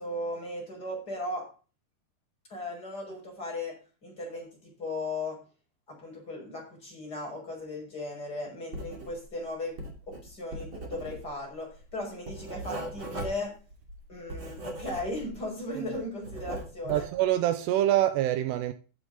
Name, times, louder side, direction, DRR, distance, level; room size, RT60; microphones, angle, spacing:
voice 1, 0.0-1.5 2.5-3.7 4.0-5.4 5.9-9.8 10.1-13.5 14.1-17.0, left 2 dB, 20° left, 5.6 m, -37 dB
Writing, 8.7-9.4 9.6-15.5 15.8-17.2, right 1 dB, 35° right, 2.8 m, -39 dB
voice 2, 16.9-18.7, right 13 dB, 80° right, 2.7 m, -25 dB
13.5 x 8.0 x 3.9 m
omnidirectional pair, 5.0 m